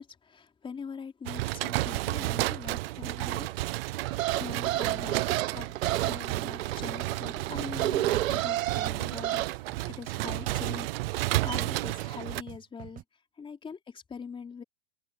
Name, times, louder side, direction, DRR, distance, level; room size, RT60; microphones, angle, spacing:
voice 1, 0.0-4.0 4.3-5.7 6.0-9.4 9.9-13.0 13.4-14.6, left 6 dB, 15° left, 3.7 m, -43 dB
sound 1, 1.2-12.4, right 19 dB, 50° right, 0.5 m, -32 dB
sound 2, 4.1-9.5, right 14 dB, 80° right, 0.9 m, -31 dB
sound 3, 8.1-13.0, right 15 dB, 20° right, 0.8 m, -48 dB
supercardioid pair, 145°, 40 cm